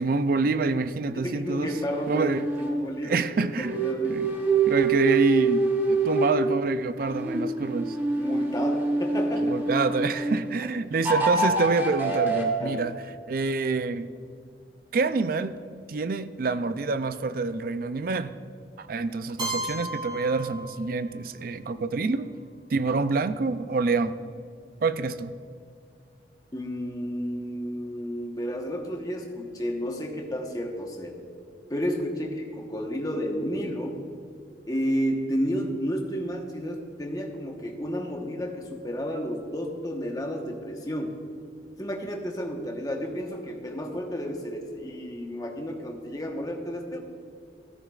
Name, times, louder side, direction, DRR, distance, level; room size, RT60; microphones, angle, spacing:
voice 1, 0.0-1.7 2.1-2.5 3.0-3.8 4.1-4.3 4.7-8.0 9.5-12.9 13.3-14.1 14.9-15.6 15.9-18.3 18.8-22.3 22.7-24.2 24.8-25.3, right 3 dB, 55° right, 12 dB, 0.4 m, -27 dB
voice 2, 1.1-4.2 8.2-9.5 12.6-12.8 21.7-22.1 26.5-31.2 31.7-34.0 34.7-41.2 41.8-47.0, equal, 20° left, 1 dB, 1.1 m, -32 dB
sound 1, 1.4-2.8 3.6-6.5 7.0-10.4 11.0-12.5, right 3 dB, 10° right, 1.3 m, -26 dB
Keyboard (musical), 19.4-21.3, right 1 dB, 25° right, 2.7 m, -34 dB
15.5 x 13.5 x 2.4 m, 2.4 s
head